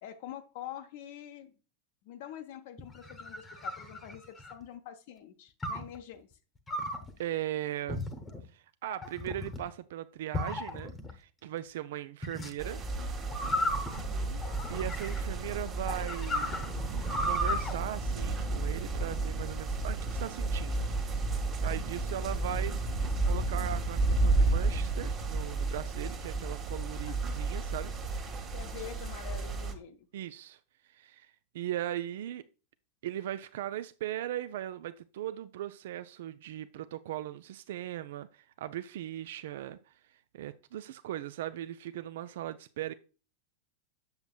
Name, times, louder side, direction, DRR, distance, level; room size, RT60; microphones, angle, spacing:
voice 1, 0.0-1.5 2.0-6.3 13.9-14.4 27.0-27.2 28.5-30.1, left 10 dB, 50° left, 0.7 m, -46 dB
sound 1, 2.8-4.6 5.6-6.0 6.7-7.1 7.9-8.4 9.0-9.6 10.3-11.1 12.2-12.5 13.3-15.4 15.9-17.7, left 1 dB, 15° left, 0.9 m, -35 dB
voice 2, 7.2-8.1 8.5-12.8 14.7-16.6 17.2-20.8 21.6-22.8 23.2-27.9 30.1-30.6 30.9-32.4 33.0-39.9 40.3-42.9, right 12 dB, 55° right, 0.3 m, -38 dB
sound 2, 12.6-29.7, right 2 dB, 30° right, 1.3 m, -32 dB
7.9 x 7.0 x 2.3 m
figure-of-eight pair, 90°, 0 cm